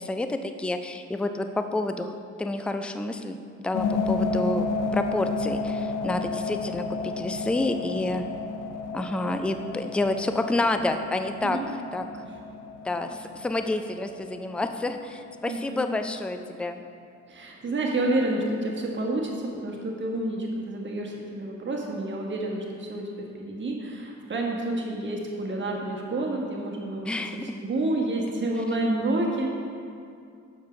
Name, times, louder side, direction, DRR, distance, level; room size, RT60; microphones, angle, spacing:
voice 1, 0.0-3.4 3.6-4.7 4.9-8.2 8.9-11.6 11.9-12.0 12.8-16.8 27.1-27.6, left 2 dB, 5° left, 7 dB, 0.3 m, -29 dB
sound 1, 3.7-15.5, left 4 dB, 90° left, 0.5 m, -32 dB
voice 2, 11.4-11.7 12.2-12.3 15.4-15.9 17.3-27.1 27.4-29.5, right 2 dB, 40° right, -1 dB, 1.4 m, -29 dB
6.5 x 5.5 x 5.1 m, 2.4 s
cardioid pair, 90°, 30 cm